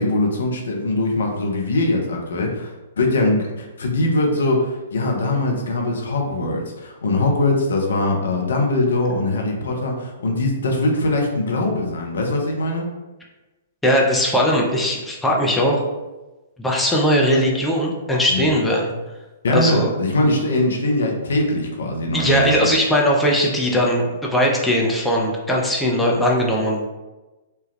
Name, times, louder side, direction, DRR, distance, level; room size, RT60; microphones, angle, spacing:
voice 1, 0.0-12.9 18.3-18.5 19.4-22.7, left 2 dB, 65° left, 1 dB, 0.7 m, -21 dB
voice 2, 13.8-15.8 16.6-18.9 19.5-19.9 22.1-26.9, equal, 5° left, -3 dB, 0.6 m, -19 dB
3.2 x 2.3 x 3.1 m, 1.1 s
figure-of-eight pair, 115°, 0 cm